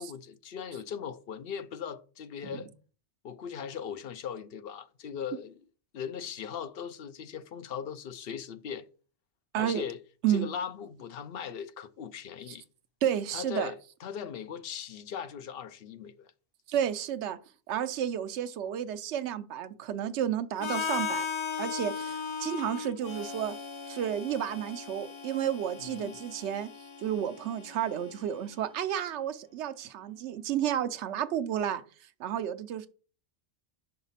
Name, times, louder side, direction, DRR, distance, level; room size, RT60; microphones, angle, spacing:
voice 1, 0.0-2.7 3.2-5.6 5.9-8.9 9.6-10.0 10.3-12.6 13.3-16.3 25.8-26.2, left 7 dB, 60° left, 0.8 m, -39 dB
voice 2, 13.0-13.7 16.7-17.4 17.7-21.3 21.6-23.5 23.9-26.7 27.0-31.8 32.2-32.9, right 10 dB, 80° right, 0.9 m, -31 dB
Harmonica, 20.6-28.5, left 6 dB, 40° left, 0.4 m, -37 dB
5.8 x 4.0 x 5.6 m
omnidirectional pair, 1.2 m